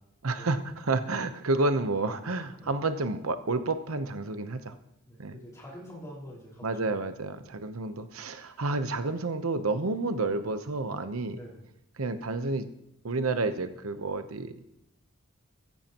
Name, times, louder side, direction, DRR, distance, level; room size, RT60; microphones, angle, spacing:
voice 1, 0.2-4.7 5.2-5.4 6.6-11.4 12.0-12.7 13.0-14.7, right 3 dB, 85° right, 9 dB, 0.9 m, -30 dB
voice 2, 5.0-7.1 11.3-11.7, equal, 15° left, -5 dB, 4.9 m, -46 dB
15.0 x 14.5 x 3.0 m, 0.80 s
head